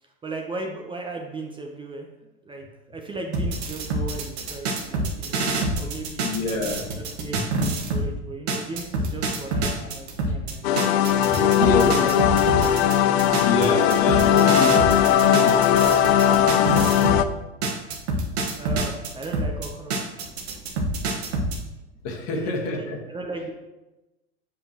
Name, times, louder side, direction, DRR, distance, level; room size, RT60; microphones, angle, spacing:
voice 1, 0.2-2.1 2.5-5.4 5.8-10.7 11.3-12.8 18.5-20.0 22.3-23.5, right 3 dB, 15° right, 2 dB, 0.7 m, -36 dB
sound 1, 3.3-8.1 8.5-17.3 17.6-21.6, right 2 dB, 65° right, 1.3 m, -27 dB
voice 2, 6.2-6.8 7.3-7.4 9.8-9.9 10.3-10.4 11.3-12.0 13.4-16.9 22.0-23.0, left 3 dB, 50° left, 1 dB, 1.5 m, -28 dB
sound 2, 10.6-17.3, left 9 dB, 65° left, 0.5 m, -19 dB
7.7 x 5.3 x 2.9 m, 1.0 s
hypercardioid pair, 105°, 34 cm